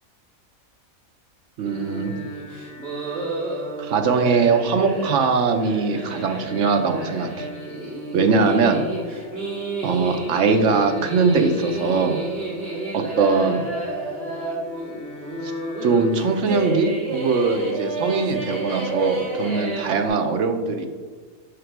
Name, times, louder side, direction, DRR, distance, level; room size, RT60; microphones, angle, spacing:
sound 1, 1.6-20.1, right 2 dB, 45° right, 2.0 m, -31 dB
voice 1, 1.6-2.1 3.8-7.5 8.1-9.2 9.8-12.2 12.9-13.6 15.4-15.5 15.8-20.9, right 4 dB, 65° right, 6 dB, 1.0 m, -21 dB
5.7 x 5.1 x 4.6 m, 1.5 s
omnidirectional pair, 1.5 m